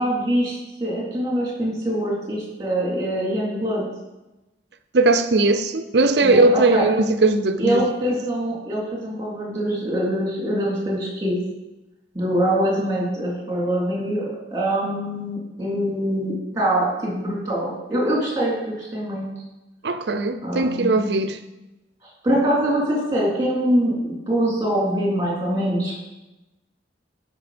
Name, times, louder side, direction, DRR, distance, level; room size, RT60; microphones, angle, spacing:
voice 1, 0.0-3.9 6.2-6.9 7.6-11.4 12.1-14.2 14.5-19.3 20.4-21.0 22.0-26.0, right 1 dB, 20° right, 3.3 m, -24 dB
voice 2, 4.9-7.8 19.8-21.4, right 2 dB, 60° right, 0.6 m, -19 dB
11.5 x 5.3 x 5.1 m
head